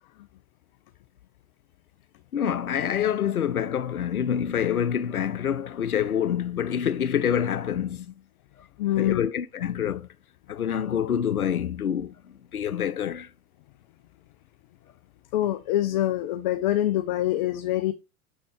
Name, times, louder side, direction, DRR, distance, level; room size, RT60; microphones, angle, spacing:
voice 1, 2.3-8.1 9.0-10.1 10.5-12.1 12.5-13.3, left 9 dB, 85° left, 0.5 m, -26 dB
voice 2, 8.8-9.3 15.3-17.9, left 13 dB, 35° left, 0.5 m, -25 dB
7.1 x 4.2 x 4.5 m
figure-of-eight pair, 95°, 43 cm